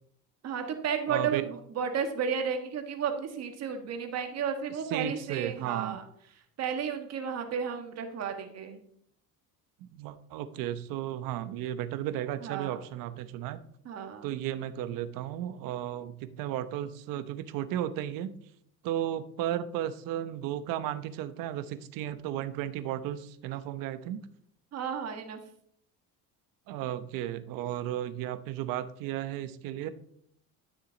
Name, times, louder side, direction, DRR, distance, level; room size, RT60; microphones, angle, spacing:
voice 1, 0.4-6.0 6.6-8.8 12.4-12.8 13.8-14.3 24.7-25.4, right 7 dB, 50° right, 6 dB, 1.6 m, -33 dB
voice 2, 1.1-1.5 4.9-6.0 9.8-13.6 14.2-18.4 18.8-24.2 26.7-29.9, right 12 dB, 80° right, 12 dB, 0.9 m, -34 dB
13.0 x 6.2 x 4.0 m, 0.66 s
cardioid pair, 130°, 33 cm